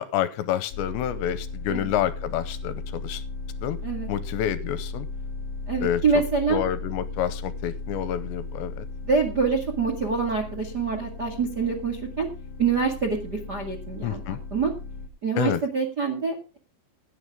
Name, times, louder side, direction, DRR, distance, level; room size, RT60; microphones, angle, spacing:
voice 1, 0.0-3.2 3.6-3.8 4.1-5.1 5.8-6.0 6.5-8.9 14.0-14.4 15.4-15.6, left 11 dB, 80° left, 14 dB, 2.9 m, -28 dB
sound 1, 0.7-15.1, left 3 dB, 50° left, 1.9 m, -36 dB
voice 2, 5.7-6.6 9.1-12.3 12.6-14.7 15.2-16.6, right 5 dB, 45° right, 3 dB, 1.3 m, -26 dB
17.5 x 9.7 x 3.7 m, 0.30 s
omnidirectional pair, 5.3 m